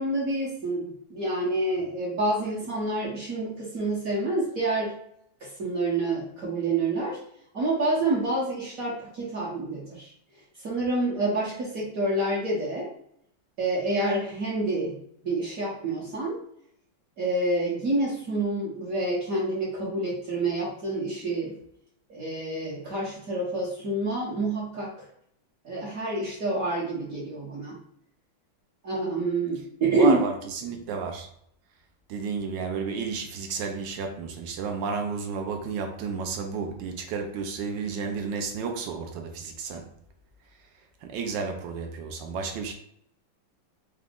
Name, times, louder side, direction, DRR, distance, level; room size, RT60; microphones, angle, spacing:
voice 1, 0.0-4.9 5.6-7.2 7.5-10.1 10.6-12.9 13.6-15.0 15.2-16.4 17.2-21.5 22.1-24.9 25.6-27.8 28.8-30.2, right 2 dB, 50° right, 1.2 m, -27 dB
voice 2, 29.9-31.3 32.1-39.9 41.0-42.7, right 5 dB, 70° right, 1.1 m, -32 dB
5.0 x 2.2 x 3.6 m
omnidirectional pair, 2.4 m